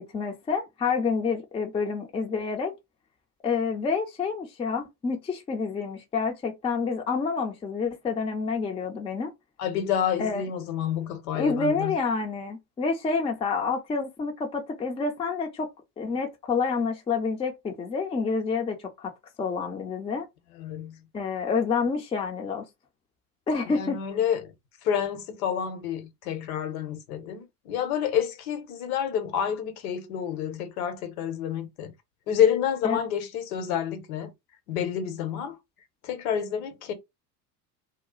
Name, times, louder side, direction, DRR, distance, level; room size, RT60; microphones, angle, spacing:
voice 1, 0.0-2.7 3.4-9.3 10.2-10.4 11.3-15.7 16.0-19.1 19.4-20.3 21.1-22.7 23.5-24.0 32.8-33.0, left 5 dB, 10° left, 0.5 m, -28 dB
voice 2, 9.6-11.9 20.6-20.9 23.7-24.5 24.8-31.9 32.3-34.3 34.7-35.6 36.0-36.9, left 9 dB, 60° left, 0.9 m, -28 dB
2.3 x 2.0 x 3.7 m
figure-of-eight pair, 75°, 48 cm